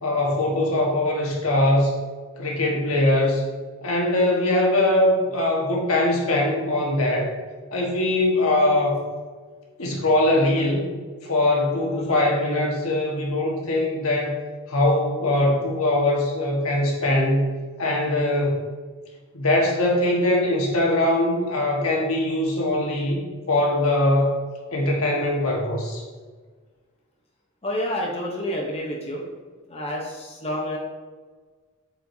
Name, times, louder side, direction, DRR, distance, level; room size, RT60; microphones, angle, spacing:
voice 1, 0.0-1.9 2.4-3.4 3.8-7.3 7.7-9.0 9.8-10.9 11.2-14.4 14.7-18.7 19.3-24.3 24.7-26.0, left 1 dB, 75° left, -1 dB, 1.5 m, -22 dB
voice 2, 27.6-29.2 29.7-30.8, equal, 30° left, -2 dB, 0.9 m, -29 dB
8.1 x 5.0 x 2.7 m, 1.5 s
head